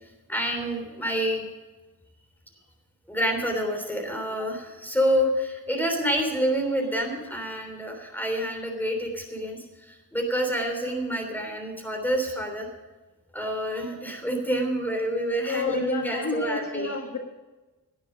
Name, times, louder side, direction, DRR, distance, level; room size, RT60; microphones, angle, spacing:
voice 1, 0.3-1.4 3.1-12.7 13.3-17.0, equal, 5° left, 3 dB, 3.4 m, -28 dB
voice 2, 15.5-17.2, left 4 dB, 45° left, 2 dB, 1.8 m, -30 dB
17.5 x 9.9 x 5.2 m, 1.2 s
wide cardioid pair, 155°, 40 cm